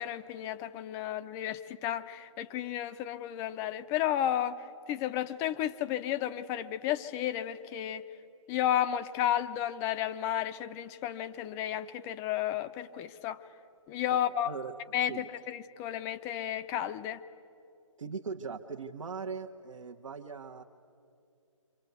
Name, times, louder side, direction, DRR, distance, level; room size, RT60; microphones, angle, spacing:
voice 1, 0.0-4.6 4.9-8.0 8.5-13.4 13.9-14.5 14.9-17.2, left 11 dB, 15° left, 12 dB, 0.5 m, -32 dB
voice 2, 18.0-20.6, right 5 dB, 70° right, 1 dB, 1.2 m, -40 dB
28.0 x 25.5 x 8.1 m, 2.7 s
figure-of-eight pair, 140°, 17 cm